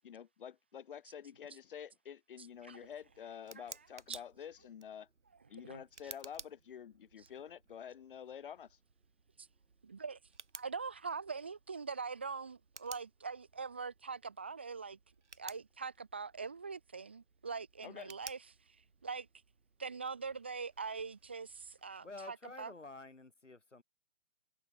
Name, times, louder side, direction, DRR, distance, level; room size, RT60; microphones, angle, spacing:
voice 1, 0.0-5.1 5.5-8.8 17.8-18.1, left 8 dB, 45° left, 2.0 m, -49 dB
voice 2, 2.4-2.8 3.6-3.7 4.1-4.2 5.6-5.8 9.4-9.5 9.8-10.2 10.5-15.0 15.4-18.8 19.0-19.3 19.8-22.7, right 5 dB, 10° right, 0.4 m, -43 dB
Tick, 2.5-22.1, right 4 dB, 80° right, 3.4 m, -57 dB
voice 3, 22.0-23.8, left 3 dB, 90° left, 5.6 m, -50 dB
figure-of-eight pair, 145°, 35 cm